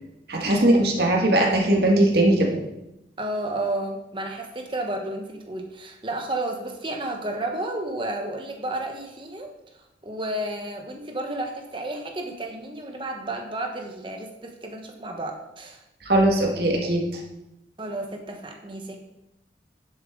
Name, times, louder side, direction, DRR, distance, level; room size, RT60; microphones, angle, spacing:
voice 1, 0.3-2.6 16.1-17.0, right 1 dB, 60° right, -1 dB, 1.8 m, -20 dB
voice 2, 3.2-9.5 10.0-15.8 17.8-19.0, right 1 dB, 30° right, 3 dB, 1.2 m, -32 dB
10.5 x 7.5 x 3.8 m, 0.91 s
head